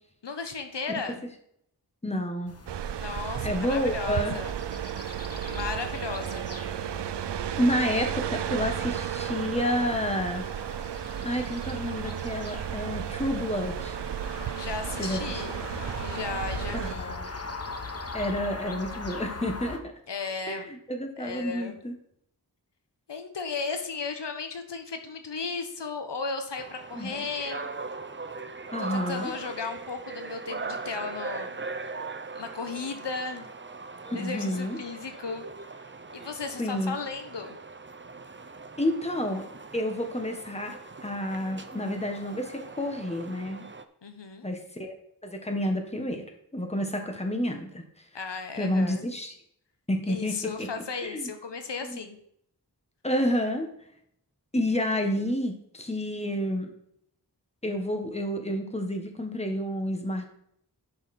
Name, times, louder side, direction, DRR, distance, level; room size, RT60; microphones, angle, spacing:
voice 1, 0.2-1.2 3.0-4.5 5.4-6.5 14.5-17.2 20.1-20.7 21.2-21.8 23.1-27.7 28.9-31.5 32.3-33.5 34.1-35.5 36.1-37.6 44.0-44.5 48.1-49.0 50.1-52.2, left 4 dB, 85° left, 6 dB, 1.1 m, -35 dB
voice 2, 2.0-2.5 3.4-4.4 7.6-10.5 11.2-14.0 15.0-15.4 16.7-17.3 18.1-19.9 20.5-21.9 26.9-27.3 28.7-29.3 34.0-34.8 36.6-37.0 38.8-39.5 39.7-43.6 44.4-44.9 45.2-46.3 46.5-47.8 48.5-49.3 49.9-50.7 51.0-51.3 51.8-52.0 53.0-53.7 54.5-56.7 57.6-60.2, left 1 dB, 15° left, 4 dB, 1.4 m, -30 dB
sound 1, 2.5-19.8, left 3 dB, 35° left, 1.1 m, -41 dB
sound 2, 2.7-16.9, right 10 dB, 80° right, 0.5 m, -33 dB
sound 3, 26.6-43.8, right 3 dB, 30° right, 0.7 m, -40 dB
11.0 x 5.6 x 4.3 m, 0.72 s
wide cardioid pair, 70°, 41 cm